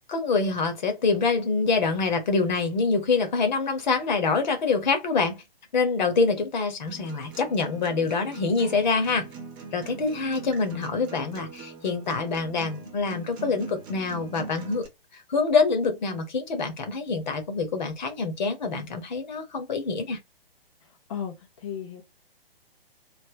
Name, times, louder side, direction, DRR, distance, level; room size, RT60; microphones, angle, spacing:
voice 1, 0.1-5.4 5.7-9.3 9.7-14.9 15.1-20.2, left 4 dB, 45° left, 1.2 m, -25 dB
Acoustic guitar, 6.9-14.9, right 4 dB, 20° right, 0.7 m, -42 dB
voice 2, 20.8-22.0, left 8 dB, 30° left, 0.6 m, -36 dB
3.4 x 2.9 x 2.8 m
figure-of-eight pair, 125°, 30 cm